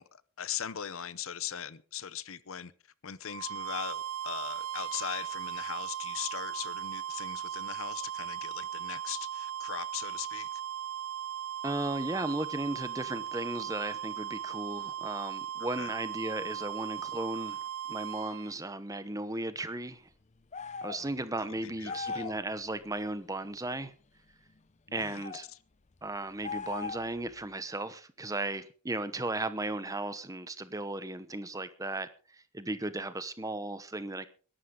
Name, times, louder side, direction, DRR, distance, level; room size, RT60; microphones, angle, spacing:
voice 1, 0.0-2.7 3.0-10.6 15.8-15.9 21.0-22.3 24.9-25.2, left 9 dB, 70° left, 0.7 m, -40 dB
sound 1, 3.2-18.5, right 10 dB, 75° right, 0.6 m, -38 dB
voice 2, 11.6-17.6 17.9-20.1 20.8-23.9 24.9-25.5 26.0-34.3, right 2 dB, 15° right, 0.9 m, -36 dB
sound 2, 20.5-21.0 21.8-22.4 24.9-25.4 26.4-27.2, left 5 dB, 30° left, 0.6 m, -38 dB
21.0 x 11.5 x 3.8 m
head